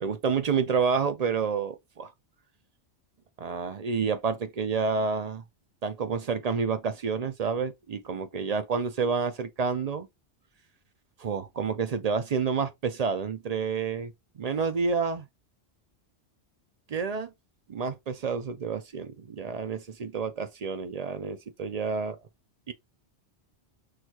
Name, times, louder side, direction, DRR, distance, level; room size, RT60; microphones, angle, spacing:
voice 1, 0.0-2.1 3.4-5.4 5.8-10.1 11.2-15.3 16.9-17.3 17.7-22.1 22.7-22.8, right 5 dB, 50° right, 0.5 m, -29 dB
6.2 x 2.4 x 2.9 m
omnidirectional pair, 1.2 m